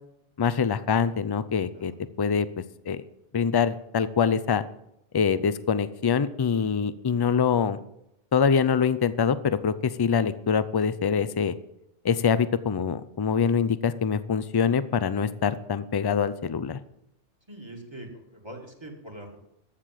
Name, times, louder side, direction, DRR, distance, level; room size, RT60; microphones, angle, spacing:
voice 1, 0.4-1.9 2.2-2.5 2.9-3.0 3.3-4.6 5.1-7.8 8.3-11.5 12.0-16.8, left 6 dB, 35° left, 15 dB, 0.3 m, -24 dB
voice 2, 17.5-19.4, right 1 dB, 20° right, 2 dB, 2.3 m, -43 dB
14.5 x 6.7 x 7.6 m, 0.79 s
omnidirectional pair, 1.2 m